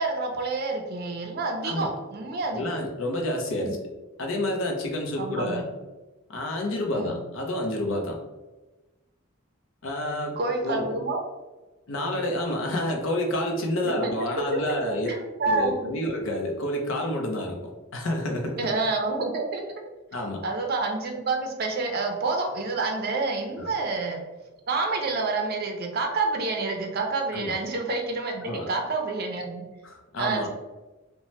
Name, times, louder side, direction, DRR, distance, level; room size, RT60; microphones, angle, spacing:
voice 1, 0.0-2.7 3.6-3.8 5.2-5.7 6.9-7.2 10.4-11.2 13.8-15.9 18.6-19.6 20.4-24.2 24.7-29.7 30.2-30.5, right 3 dB, 50° right, 2 dB, 0.5 m, -28 dB
voice 2, 2.5-3.9 4.2-5.7 6.3-8.2 9.8-10.9 11.9-15.1 15.5-18.6 20.1-20.4 23.6-23.7 27.3-27.5 28.4-28.7 29.8-30.5, left 1 dB, 65° left, 1 dB, 0.6 m, -29 dB
2.7 x 2.1 x 3.1 m, 1.1 s
head